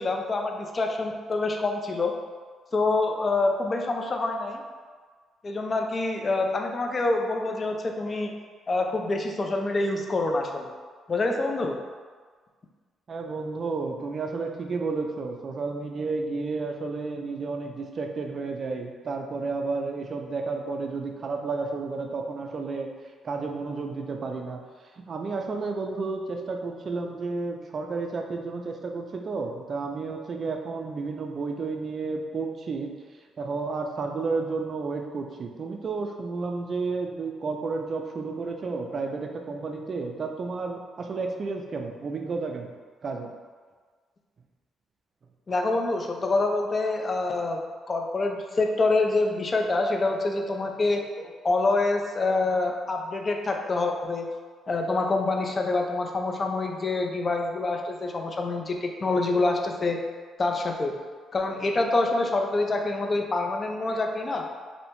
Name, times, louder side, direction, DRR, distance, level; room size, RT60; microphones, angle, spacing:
voice 1, 0.0-2.1 2.7-4.6 5.4-8.3 8.7-10.7 11.1-11.8 45.5-47.6 47.9-54.3 54.7-60.0 60.4-61.0 61.3-64.5, left 2 dB, 35° left, 2 dB, 0.3 m, -26 dB
voice 2, 13.1-22.9 23.2-24.6 24.9-32.9 33.4-42.7 43.0-43.3, right 4 dB, 45° right, 3 dB, 0.3 m, -31 dB
2.7 x 2.1 x 2.9 m, 1.5 s
cardioid pair, 90°, 0 cm